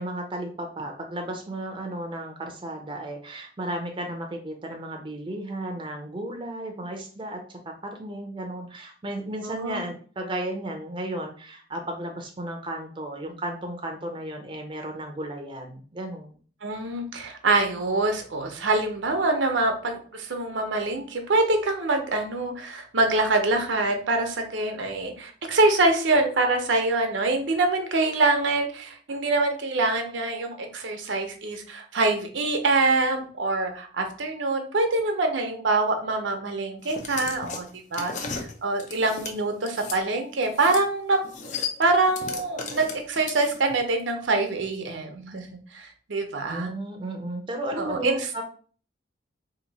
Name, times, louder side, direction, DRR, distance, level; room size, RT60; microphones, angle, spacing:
voice 1, 0.0-16.4 46.4-48.4, right 1 dB, 25° right, 3 dB, 0.5 m, -34 dB
voice 2, 9.4-9.8 16.6-37.7 37.9-41.2 41.8-46.7 47.8-48.2, right 2 dB, 80° right, 4 dB, 0.7 m, -25 dB
sound 1, 36.8-40.0 40.4-40.9 41.1-43.8, left 5 dB, 40° left, 0.5 m, -35 dB
2.9 x 2.6 x 4.0 m, 0.43 s
head